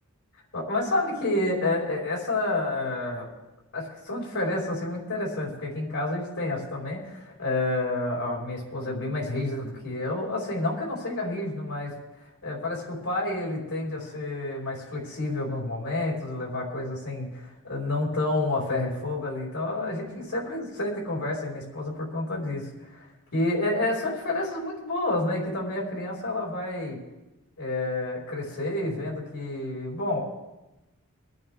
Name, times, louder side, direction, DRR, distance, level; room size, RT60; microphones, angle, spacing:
voice 1, 0.5-3.3 3.7-11.9 12.4-27.0 27.6-30.2, left 2 dB, 80° left, -3 dB, 5.2 m, -29 dB
25.0 x 9.3 x 3.7 m, 1.0 s
head